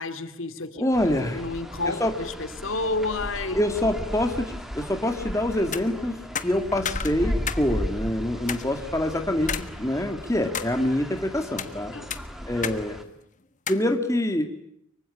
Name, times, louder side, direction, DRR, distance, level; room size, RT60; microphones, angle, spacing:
voice 1, 0.0-0.8 1.3-3.6 11.9-12.2, left 3 dB, 70° left, 10 dB, 2.4 m, -30 dB
voice 2, 0.8-1.4 1.9-2.2 3.5-6.2 6.4-11.9 12.5-13.0 13.7-14.5, left 1 dB, 15° left, 6 dB, 2.0 m, -25 dB
sound 1, 0.9-13.0, equal, ahead, 2.3 m, -36 dB
sound 2, 5.6-5.8 6.4-7.7 8.0-8.1 8.5-8.6 9.5-9.7 10.1-10.7 11.4-11.7 12.1-12.8 13.1-13.2 13.7-13.9, left 8 dB, 35° left, 1.3 m, -32 dB
24.5 x 24.0 x 9.8 m, 0.75 s
head